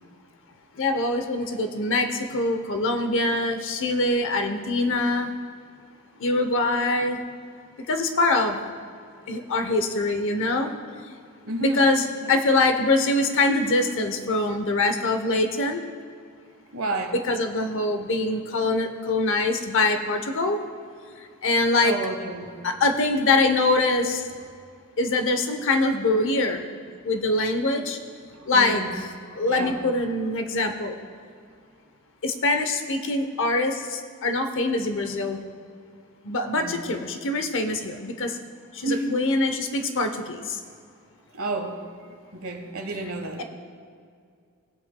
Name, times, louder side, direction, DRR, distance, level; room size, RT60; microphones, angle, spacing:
voice 1, 0.7-5.3 6.2-7.2 7.8-8.6 9.3-10.7 11.0-11.2 11.6-15.8 17.1-20.6 21.2-21.9 22.6-24.3 25.0-26.6 27.0-28.0 28.5-29.1 29.4-30.9 32.2-35.4 36.2-38.4 38.7-40.6 43.4-43.5, left 2 dB, 60° left, 6 dB, 0.8 m, -24 dB
voice 2, 11.4-12.3 16.7-17.1 21.8-22.6 28.3-28.9 29.3-29.8 36.5-36.9 38.8-39.2 41.3-41.8 42.3-43.4, right 2 dB, 65° right, 4 dB, 1.2 m, -31 dB
19.0 x 8.2 x 2.2 m, 2.3 s
head